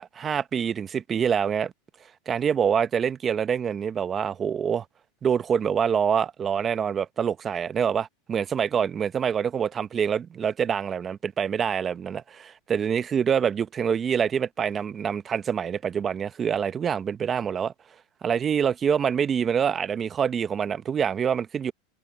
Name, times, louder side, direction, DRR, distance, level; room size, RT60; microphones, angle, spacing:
voice 1, 0.0-1.7 2.3-4.8 5.2-17.7 18.2-21.7, right 7 dB, 25° right, 1.0 m, -26 dB
supercardioid pair, 125°, 0 cm